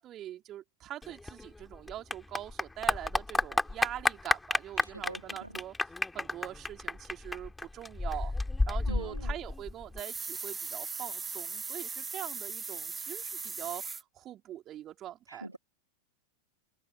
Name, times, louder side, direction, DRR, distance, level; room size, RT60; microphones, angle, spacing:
voice 1, 0.0-5.8 6.1-8.3 8.7-15.5, right 12 dB, 30° right, 3.6 m, -43 dB
Clapping / Applause, 1.0-10.0, left 2 dB, 5° left, 4.3 m, -32 dB
voice 2, 4.8-5.5 8.9-9.3 15.3-15.6, right 1 dB, 85° right, 2.2 m, -43 dB
sound 1, 10.0-14.0, right 5 dB, 15° right, 1.5 m, -38 dB
figure-of-eight pair, 90°, 0 cm